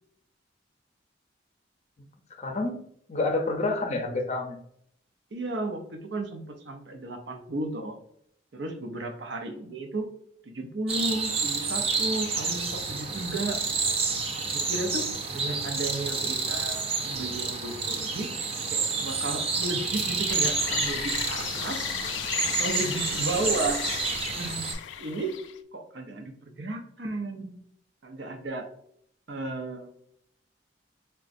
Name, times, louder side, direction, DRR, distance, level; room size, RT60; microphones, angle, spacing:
voice 1, 2.4-2.8 3.1-4.6 23.4-23.6, left 2 dB, 35° left, 4 dB, 0.6 m, -28 dB
voice 2, 5.3-8.0 8.5-10.1 10.5-13.6 14.5-15.0 15.3-18.3 18.7-21.9 22.4-23.8 24.3-24.6 25.0-25.3 25.7-27.6 28.0-28.6 29.3-29.9, right 2 dB, 70° right, 4 dB, 0.6 m, -34 dB
sound 1, 10.9-24.7, right 4 dB, 35° right, 0.4 m, -29 dB
sound 2, 20.3-25.6, left 9 dB, 85° left, 0.3 m, -35 dB
4.9 x 2.3 x 2.5 m, 0.68 s
head